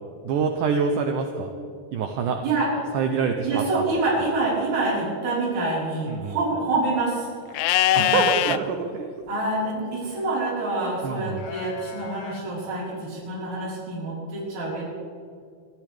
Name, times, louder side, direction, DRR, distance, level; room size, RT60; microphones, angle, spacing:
voice 1, 0.2-1.5 1.9-2.4 2.9-3.8 6.1-6.4 7.9-9.1 10.8-11.5 13.6-13.7, right 6 dB, 75° right, 4 dB, 2.1 m, -26 dB
voice 2, 3.4-7.3 8.0-8.2 9.3-14.8, right 2 dB, 50° right, -6 dB, 6.0 m, -26 dB
Livestock farm animals working animals, 7.5-8.6 11.4-12.4, left 13 dB, 85° left, 2.4 m, -23 dB
25.0 x 14.0 x 3.5 m, 2.4 s
omnidirectional pair, 4.4 m